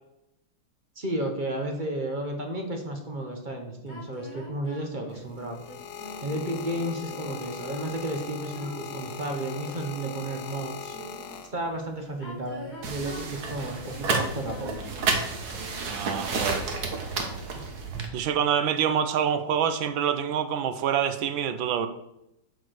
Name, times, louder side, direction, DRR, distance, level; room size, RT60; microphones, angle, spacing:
voice 1, 1.0-5.6 6.2-11.0 11.5-14.9, right 1 dB, 30° right, 3 dB, 1.1 m, -32 dB
sound 1, 3.9-11.4 12.1-16.1, left 1 dB, 30° left, 2.6 m, -45 dB
sound 2, 5.1-11.9 12.8-13.1, left 7 dB, 80° left, 1.6 m, -40 dB
sound 3, 12.8-18.1, right 4 dB, 55° right, 1.6 m, -30 dB
voice 2, 15.9-16.7 18.1-21.9, right 8 dB, 75° right, 10 dB, 1.5 m, -26 dB
8.4 x 4.7 x 6.5 m, 0.83 s
omnidirectional pair, 2.3 m